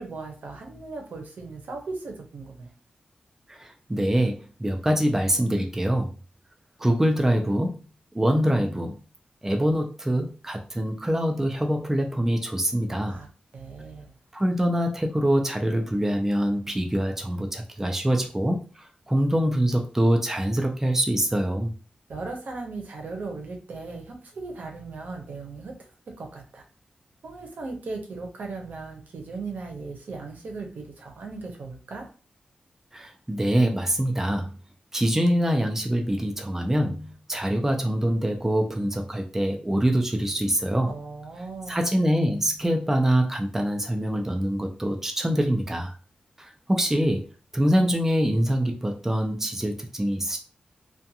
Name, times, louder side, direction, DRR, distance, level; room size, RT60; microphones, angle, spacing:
voice 1, 0.0-2.7 13.1-13.3 13.5-14.1 22.1-25.7 26.2-26.6 27.2-32.1 40.8-41.8, right 3 dB, 80° right, 2 dB, 0.7 m, -37 dB
voice 2, 3.5-6.1 6.8-7.8 8.1-8.9 9.4-13.2 14.3-21.7 32.9-34.5 34.9-40.9 41.7-46.0 46.4-47.2 47.5-50.4, equal, 15° right, 3 dB, 0.4 m, -24 dB
2.4 x 2.2 x 2.7 m, 0.36 s
wide cardioid pair, 105°, 3 cm